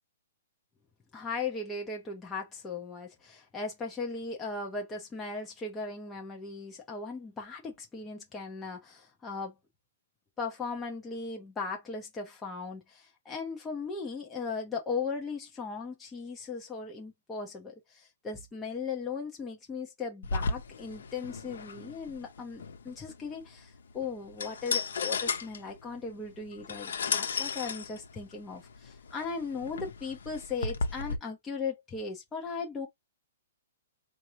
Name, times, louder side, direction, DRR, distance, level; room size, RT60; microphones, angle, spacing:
voice 1, 1.1-9.5 10.4-32.9, left 4 dB, 10° left, 0.7 m, -37 dB
sound 1, 20.2-31.2, left 5 dB, 75° left, 0.9 m, -35 dB
4.4 x 2.5 x 3.0 m
hypercardioid pair, 175°, 0 cm